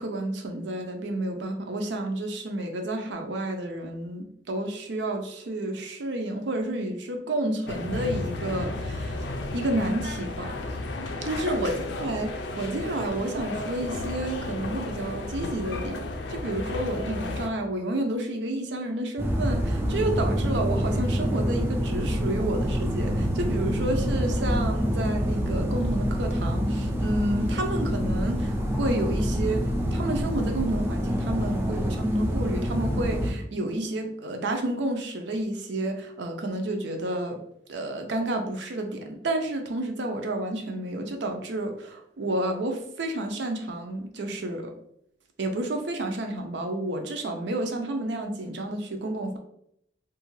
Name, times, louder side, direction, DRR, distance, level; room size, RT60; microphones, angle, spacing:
voice 1, 0.0-9.2 9.5-10.6 11.2-11.7 12.0-37.4 37.7-44.7 45.4-49.4, right 1 dB, 75° right, 4 dB, 0.5 m, -30 dB
sound 1, 7.7-17.5, left 2 dB, 70° left, 0.4 m, -33 dB
sound 2, 19.2-33.3, equal, 15° right, 0.4 m, -26 dB
2.6 x 2.4 x 3.1 m, 0.72 s
head